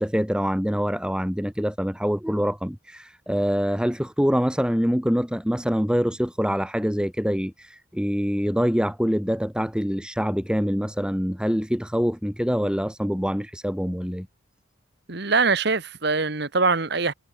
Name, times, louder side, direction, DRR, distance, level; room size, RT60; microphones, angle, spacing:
voice 1, 0.0-14.3, equal, 5° right, 3.7 m, -25 dB
voice 2, 15.1-17.1, right 4 dB, 55° right, 1.6 m, -23 dB
head